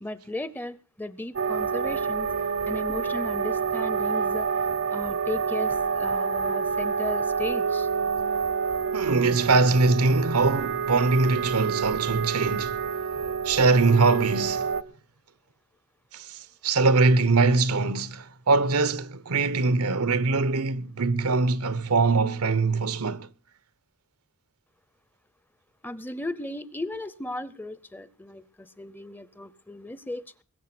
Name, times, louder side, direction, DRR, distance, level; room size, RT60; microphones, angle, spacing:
voice 1, 0.0-2.3 2.7-4.5 4.9-7.9 25.8-30.2, left 1 dB, 10° left, 0.6 m, -36 dB
sound 1, 1.4-14.8, right 5 dB, 60° right, 0.8 m, -28 dB
voice 2, 8.9-12.8 13.4-14.7 16.1-23.3, right 3 dB, 85° right, 1.0 m, -22 dB
21.5 x 7.4 x 6.0 m
head